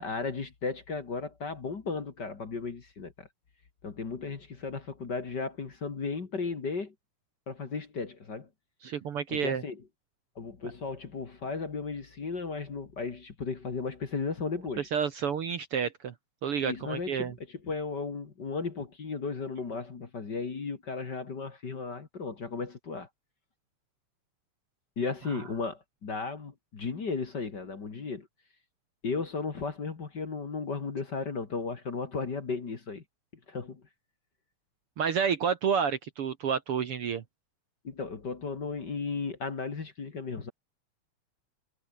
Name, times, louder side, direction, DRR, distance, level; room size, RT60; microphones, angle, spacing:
voice 1, 0.0-3.3 3.8-6.9 7.5-8.5 9.3-9.8 10.4-14.9 16.6-23.1 25.0-28.3 29.0-33.0 33.5-33.8 37.8-40.5, left 4 dB, 35° left, 2.5 m, -35 dB
voice 2, 8.8-9.6 14.9-16.1 16.4-17.3 35.0-37.2, right 7 dB, 55° right, 1.9 m, -29 dB
omnidirectional pair, 3.5 m